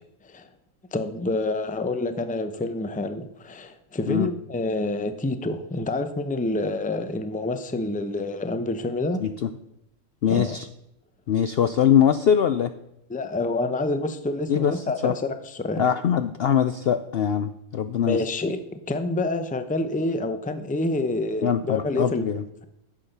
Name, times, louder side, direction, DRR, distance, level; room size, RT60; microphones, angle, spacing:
voice 1, 0.9-9.2 10.3-10.6 13.1-15.9 18.1-22.3, left 2 dB, 10° left, 10 dB, 0.5 m, -27 dB
voice 2, 9.2-9.5 10.2-10.7 11.3-12.7 14.5-14.7 15.0-15.1 15.8-18.2 21.4-22.4, left 8 dB, 60° left, 11 dB, 0.6 m, -22 dB
11.5 x 7.4 x 6.6 m, 0.83 s
omnidirectional pair, 1.5 m